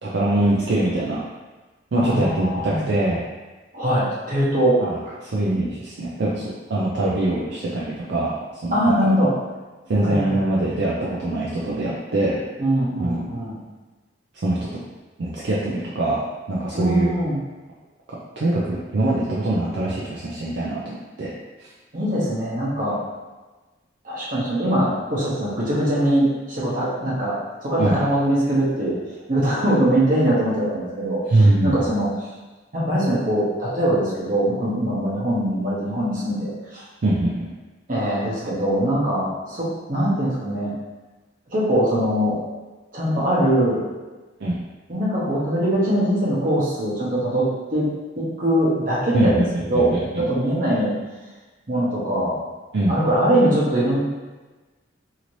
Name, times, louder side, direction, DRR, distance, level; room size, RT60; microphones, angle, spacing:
voice 1, 0.0-1.2 1.9-3.2 4.8-8.3 8.6-9.1 9.9-10.9 11.2-12.4 13.0-13.2 14.4-14.8 15.2-16.2 16.5-17.1 18.4-21.3 27.8-28.0 31.3-31.7 37.0-37.5 44.4-44.6 49.1-49.5 49.7-50.2 52.7-52.9, right 1 dB, 65° right, -6 dB, 0.4 m, -23 dB
voice 2, 2.0-2.8 3.7-4.8 5.0-5.1 8.7-9.3 10.0-10.3 12.6-13.6 16.7-17.4 21.9-23.0 24.0-29.0 29.3-32.1 32.7-36.8 37.9-40.7 41.5-42.4 42.9-43.9 44.9-47.9 48.2-49.4 49.7-50.9 51.7-52.4 52.9-54.0, right 1 dB, 45° right, -6 dB, 0.9 m, -22 dB
2.8 x 2.6 x 3.0 m, 1.2 s
head